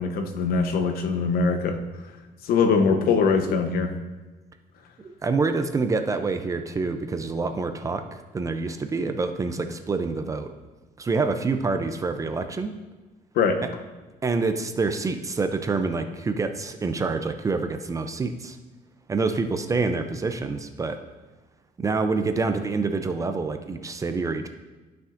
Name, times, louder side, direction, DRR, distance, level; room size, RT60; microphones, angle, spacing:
voice 1, 0.0-1.8 2.4-3.9 13.3-13.6, left 5 dB, 75° left, 6 dB, 0.9 m, -22 dB
voice 2, 5.0-10.5 11.0-12.7 13.6-13.7 14.2-18.6 19.1-21.0 21.8-24.5, right 4 dB, 20° right, 7 dB, 0.4 m, -27 dB
12.5 x 5.8 x 2.5 m, 1.2 s
cardioid pair, 145°, 16 cm